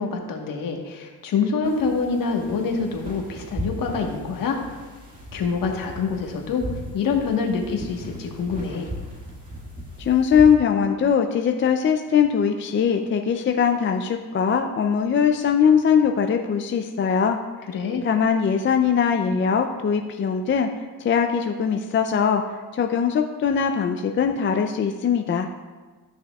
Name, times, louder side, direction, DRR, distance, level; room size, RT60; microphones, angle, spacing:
voice 1, 0.0-4.6 5.3-6.6 6.9-8.9 17.7-18.0, left 5 dB, 60° left, 2 dB, 1.4 m, -26 dB
sound 1, 1.6-10.5, equal, 20° right, 1.9 m, -37 dB
voice 2, 10.0-17.4 18.0-20.7 21.0-22.4 22.7-25.5, left 7 dB, 30° left, 5 dB, 0.4 m, -21 dB
13.5 x 6.2 x 2.3 m, 1.3 s
cardioid pair, 105°, 37 cm